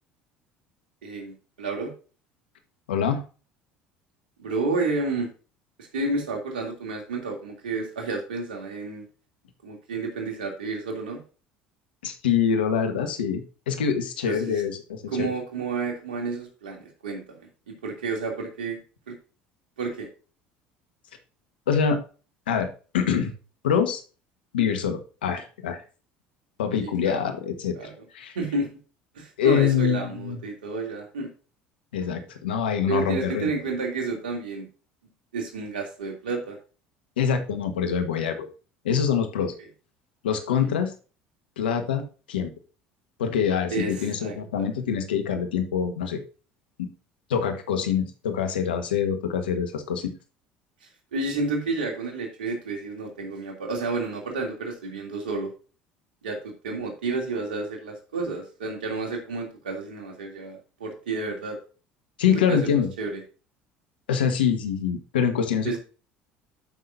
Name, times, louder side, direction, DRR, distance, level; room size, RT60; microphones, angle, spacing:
voice 1, 1.0-1.9 4.4-5.3 5.9-9.0 9.6-11.2 14.3-14.6 15.1-17.5 17.8-18.8 19.1-19.2 19.8-20.1 26.8-27.3 27.8-27.9 28.3-28.7 29.1-31.3 32.9-34.7 35.3-36.6 40.6-40.7 43.7-44.6 51.1-55.5 56.2-61.6 62.3-62.7 63.0-63.2 65.6-65.8, right 3 dB, 90° right, 1 dB, 2.9 m, -30 dB
voice 2, 2.9-3.2 12.0-13.4 13.7-15.3 21.7-22.0 22.5-22.7 22.9-23.3 23.6-24.0 24.5-25.8 26.6-27.8 28.1-28.4 29.4-30.4 31.9-33.5 37.2-38.5 38.8-39.5 40.2-40.9 41.6-42.5 43.2-46.2 46.8-46.9 47.3-50.1 62.2-62.9 64.1-65.8, left 7 dB, 90° left, 7 dB, 1.4 m, -25 dB
12.5 x 5.9 x 2.7 m, 0.36 s
hypercardioid pair, 75°, 5 cm